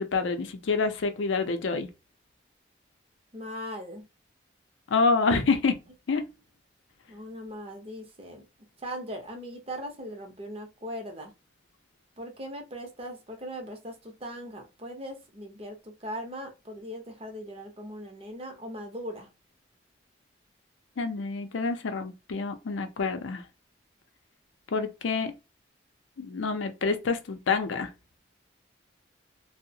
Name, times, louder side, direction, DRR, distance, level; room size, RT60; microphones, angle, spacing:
voice 1, 0.0-1.9 4.9-5.8 6.1-6.3 21.0-23.4 24.7-25.3 26.2-27.9, left 4 dB, 85° left, 0.5 m, -27 dB
voice 2, 3.3-4.0 7.1-8.4 8.8-11.3 12.2-19.3, equal, 30° right, 0.6 m, -39 dB
2.7 x 2.0 x 2.6 m
head